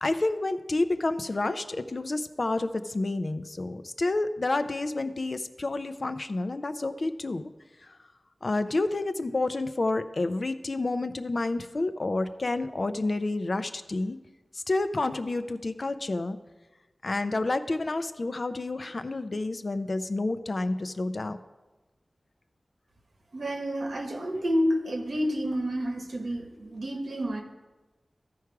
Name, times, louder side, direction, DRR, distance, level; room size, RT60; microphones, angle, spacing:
voice 1, 0.0-7.5 7.8-7.9 8.4-14.2 14.5-16.4 17.0-21.4, left 2 dB, 55° left, 10 dB, 0.5 m, -29 dB
voice 2, 23.3-27.4, equal, 80° right, 3 dB, 1.1 m, -29 dB
14.0 x 4.6 x 4.7 m, 1.2 s
wide cardioid pair, 65°, 0 cm